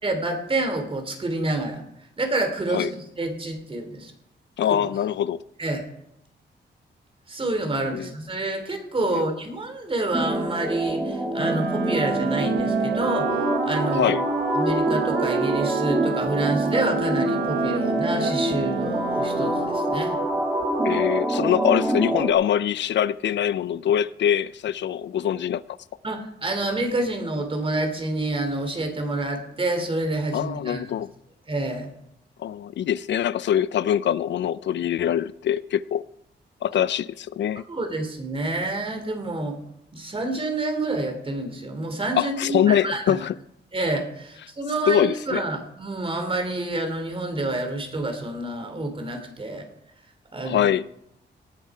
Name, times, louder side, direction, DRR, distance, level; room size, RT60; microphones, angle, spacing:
voice 1, 0.0-1.8 2.2-2.9 3.2-4.1 5.6-5.8 7.3-14.1 14.5-20.2 26.0-30.8 31.5-31.9 37.7-39.6 39.9-43.3 43.7-49.7 50.3-50.7, right 2 dB, 30° right, 2.9 m, -28 dB
voice 2, 4.6-5.4 7.9-8.1 9.1-9.3 14.0-14.2 20.8-25.6 30.3-31.1 32.4-36.0 36.6-37.6 42.1-43.3 44.9-45.4 50.4-50.8, left 10 dB, 75° left, 0.5 m, -23 dB
sound 1, 10.1-22.3, right 1 dB, 15° right, 1.9 m, -25 dB
Wind instrument woodwind instrument, 11.3-19.9, right 9 dB, 75° right, 0.7 m, -30 dB
18.0 x 10.0 x 4.8 m
wide cardioid pair, 135°, 19 cm